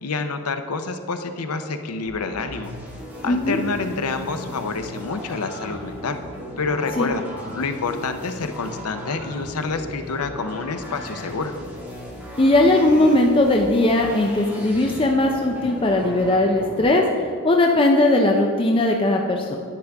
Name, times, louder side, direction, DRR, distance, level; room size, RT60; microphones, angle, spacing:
voice 1, 0.0-2.7 3.2-6.2 6.6-7.2 7.5-11.5, left 4 dB, 75° left, 8 dB, 0.7 m, -28 dB
sound 1, 2.1-16.8, equal, 10° right, 2.1 m, -37 dB
voice 2, 3.3-3.6 7.0-7.1 12.4-17.0 17.4-19.6, left 2 dB, 25° left, 1 dB, 0.5 m, -18 dB
10.0 x 9.6 x 3.5 m, 2.1 s
head